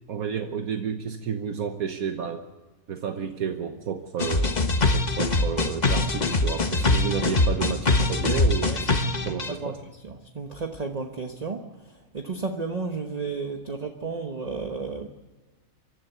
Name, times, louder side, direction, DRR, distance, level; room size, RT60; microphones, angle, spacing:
voice 1, 0.1-2.4 2.9-9.8, right 7 dB, 75° right, 6 dB, 1.5 m, -31 dB
sound 1, 4.2-9.5, left 2 dB, 30° left, 1.2 m, -23 dB
voice 2, 8.7-9.7 10.0-15.1, right 4 dB, 30° right, 5 dB, 1.1 m, -33 dB
24.5 x 14.0 x 8.2 m, 1.3 s
omnidirectional pair, 1.5 m